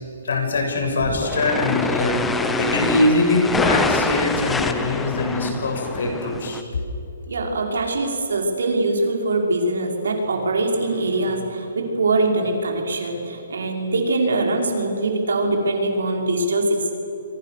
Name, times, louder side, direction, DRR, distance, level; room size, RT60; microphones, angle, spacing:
voice 1, 0.2-2.2 2.5-6.6, left 2 dB, 65° left, 3 dB, 6.9 m, -22 dB
sound 1, 1.0-6.6, left 3 dB, 5° left, 0.7 m, -25 dB
voice 2, 7.3-17.0, right 2 dB, 80° right, 1 dB, 5.5 m, -22 dB
30.0 x 24.5 x 6.8 m, 3.0 s
hypercardioid pair, 180°, 0 cm